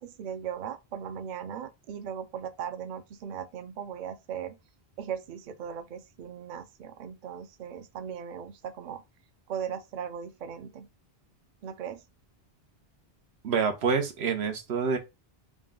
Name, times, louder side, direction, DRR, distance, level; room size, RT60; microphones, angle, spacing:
voice 1, 0.0-4.6 5.0-9.0 9.5-10.9 11.6-12.0, right 8 dB, 55° right, 0.6 m, -38 dB
voice 2, 13.4-15.0, right 5 dB, 90° right, 1.1 m, -27 dB
3.7 x 2.2 x 3.6 m
omnidirectional pair, 1.0 m